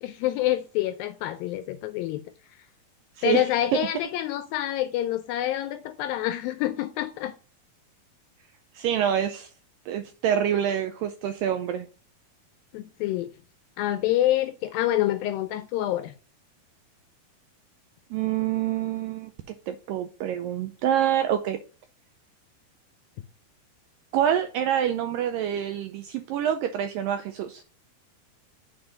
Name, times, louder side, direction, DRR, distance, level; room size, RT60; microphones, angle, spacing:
voice 1, 0.0-2.2 3.2-7.4 12.7-13.3 13.8-16.1, left 13 dB, 80° left, 2.1 m, -27 dB
voice 2, 8.8-9.5 9.9-11.9 18.1-19.3 19.7-21.6 24.1-27.6, right 10 dB, 85° right, 2.0 m, -26 dB
7.6 x 4.4 x 5.0 m
omnidirectional pair, 4.5 m